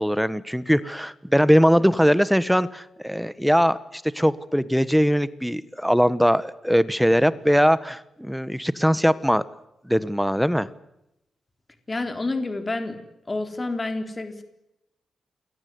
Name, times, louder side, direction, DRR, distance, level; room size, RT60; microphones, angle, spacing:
voice 1, 0.0-9.4 9.8-10.7, equal, ahead, 15 dB, 1.3 m, -21 dB
voice 2, 11.9-13.0 13.3-14.4, left 2 dB, 20° left, 7 dB, 3.8 m, -28 dB
28.5 x 22.0 x 9.6 m, 0.85 s
wide cardioid pair, 125°, 0 cm